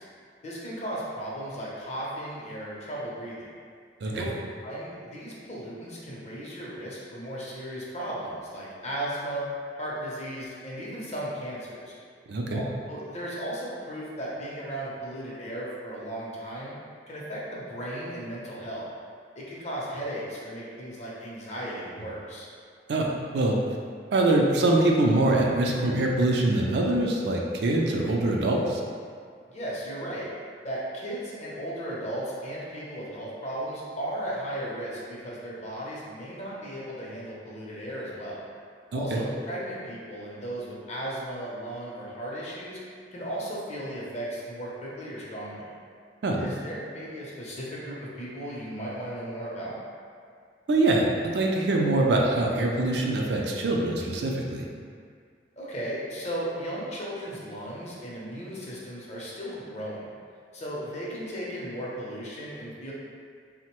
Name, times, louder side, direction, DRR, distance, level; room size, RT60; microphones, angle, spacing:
voice 1, 0.4-3.5 4.0-4.3 4.6-9.5 9.8-11.9 12.5-16.7 17.1-18.9 19.4-22.5 29.5-30.3 30.6-38.4 38.9-42.8 43.1-45.7 46.4-49.8 55.6-60.1 60.5-62.9, right 1 dB, 40° left, -5 dB, 0.6 m, -36 dB
voice 2, 12.3-12.6 22.9-23.0 23.3-23.6 24.1-28.8 38.9-39.2 46.2-46.4 50.7-54.6, right 2 dB, 65° right, -1 dB, 0.4 m, -24 dB
3.6 x 2.1 x 2.9 m, 2.1 s
head